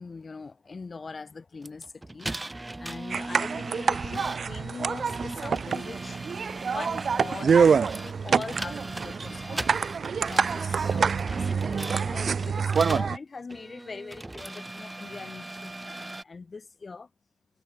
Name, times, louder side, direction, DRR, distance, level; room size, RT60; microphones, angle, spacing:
voice 1, 0.0-2.3 2.8-6.2 6.6-9.8 10.2-17.1, left 4 dB, 30° left, 5.1 m, -41 dB
sound 1, 1.6-13.1 13.5-16.2, right 2 dB, 15° right, 2.6 m, -39 dB
sound 2, 3.1-13.2, right 6 dB, 45° right, 1.7 m, -26 dB
cardioid pair, 90°, 0 cm